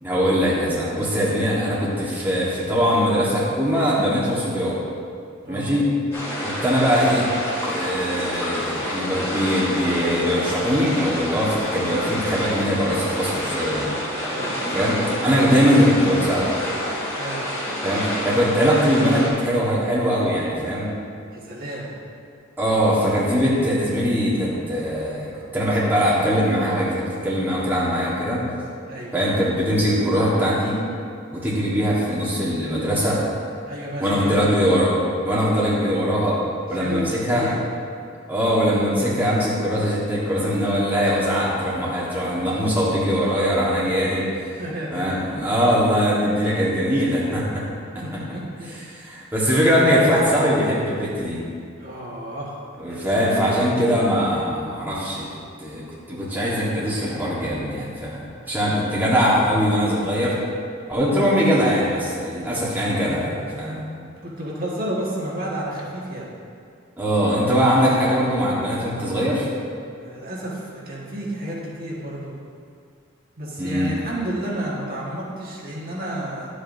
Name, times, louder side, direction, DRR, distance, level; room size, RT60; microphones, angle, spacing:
voice 1, 0.0-4.7 5.5-5.9 6.4-7.3 7.6-13.9 14.7-16.5 17.8-20.9 22.6-28.5 29.1-30.8 31.3-33.2 34.0-34.9 35.2-36.4 36.7-37.5 38.3-44.2 44.9-47.6 48.7-51.4 52.8-55.3 55.6-60.3 60.9-63.8 67.0-69.5 73.6-73.9, equal, 10° right, -8 dB, 1.5 m, -21 dB
sound 1, 6.1-19.3, equal, 15° left, 2.2 m, -28 dB
voice 2, 14.2-14.5 17.2-17.5 21.3-21.9 28.9-29.1 33.6-34.5 36.7-37.6 44.6-45.2 48.0-49.1 51.8-52.5 52.9-53.3 64.2-66.3 70.0-72.3 73.4-76.5, right 1 dB, 50° right, -5 dB, 1.6 m, -31 dB
11.0 x 8.1 x 2.7 m, 2.3 s
head